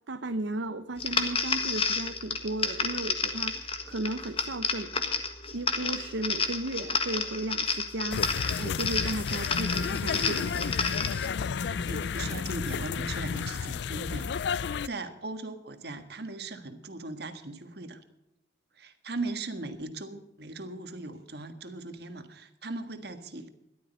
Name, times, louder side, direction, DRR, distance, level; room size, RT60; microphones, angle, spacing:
voice 1, 0.1-10.8, right 2 dB, 75° right, 9 dB, 0.7 m, -35 dB
sound 1, 1.0-11.3, left 5 dB, 30° left, 1.5 m, -31 dB
sound 2, 8.1-14.9, left 6 dB, 65° left, 0.4 m, -32 dB
voice 2, 11.7-14.3 14.6-18.0 18.7-23.5, right 2 dB, 60° right, 8 dB, 1.5 m, -39 dB
14.0 x 12.0 x 5.4 m, 0.90 s
head